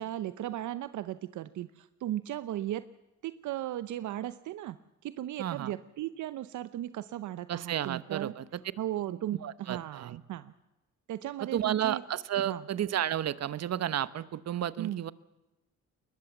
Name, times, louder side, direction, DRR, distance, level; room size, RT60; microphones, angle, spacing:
voice 1, 0.0-2.8 3.2-4.8 5.0-8.3 8.8-10.5 11.1-12.0 12.4-12.6 14.8-15.0, right 13 dB, 75° right, 13 dB, 0.8 m, -36 dB
voice 2, 5.4-5.7 7.5-8.6 9.4-10.2 11.5-15.1, right 11 dB, 60° right, 16 dB, 1.1 m, -32 dB
21.0 x 20.5 x 7.3 m, 1.0 s
cardioid pair, 90°, 30 cm